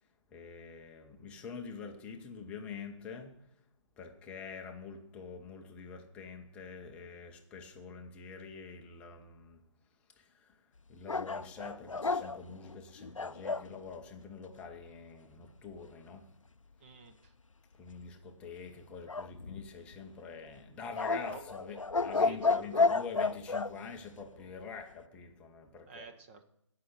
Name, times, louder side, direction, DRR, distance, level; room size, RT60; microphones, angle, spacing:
voice 1, 0.3-3.6 4.0-9.6 10.1-16.4 17.7-26.1, left 5 dB, 5° left, 0.7 m, -46 dB
sound 1, 11.1-13.7 19.1-20.0 21.0-23.7, left 4 dB, 80° left, 0.5 m, -31 dB
voice 2, 16.8-17.3 21.3-21.4 22.1-22.8 25.9-26.4, right 5 dB, 20° right, 1.0 m, -49 dB
17.0 x 5.7 x 6.7 m
figure-of-eight pair, 145°, 16 cm